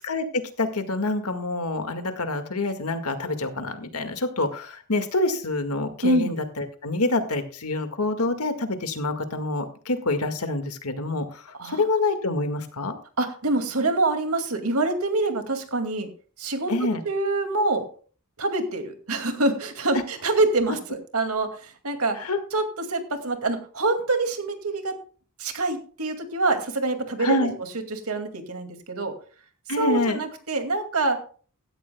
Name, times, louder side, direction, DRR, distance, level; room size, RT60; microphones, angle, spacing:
voice 1, 0.0-12.9 16.7-17.0 22.2-22.4 27.2-27.6 29.7-30.2, left 2 dB, 90° left, 7 dB, 1.9 m, -27 dB
voice 2, 6.0-6.3 11.6-11.8 13.2-16.1 16.4-17.9 18.4-22.2 22.5-25.0 25.4-27.5 27.9-29.1 29.8-31.2, right 2 dB, 80° right, 6 dB, 2.3 m, -25 dB
16.5 x 13.0 x 2.3 m, 0.41 s
head